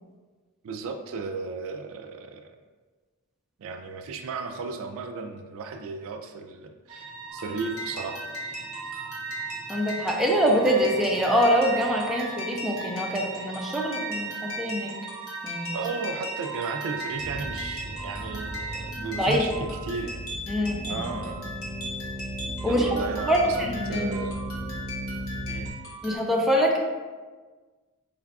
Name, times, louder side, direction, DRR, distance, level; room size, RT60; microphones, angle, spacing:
voice 1, 0.6-2.6 3.6-8.2 15.7-19.5 19.8-20.2 20.9-21.5 22.7-23.6 23.9-24.4 25.5-25.7, right 4 dB, 65° right, 5 dB, 0.3 m, -35 dB
sound 1, 6.9-18.9, right 6 dB, 20° right, 0.9 m, -39 dB
sound 2, 7.3-26.2, equal, 85° left, 1.1 m, -38 dB
voice 2, 9.7-14.9 15.4-15.8 19.2-19.5 20.5-21.2 22.6-22.9 23.3-24.1 26.0-26.8, equal, ahead, -2 dB, 0.5 m, -24 dB
sound 3, 17.2-25.7, equal, 60° left, 1.3 m, -36 dB
4.7 x 2.3 x 3.4 m, 1.4 s
head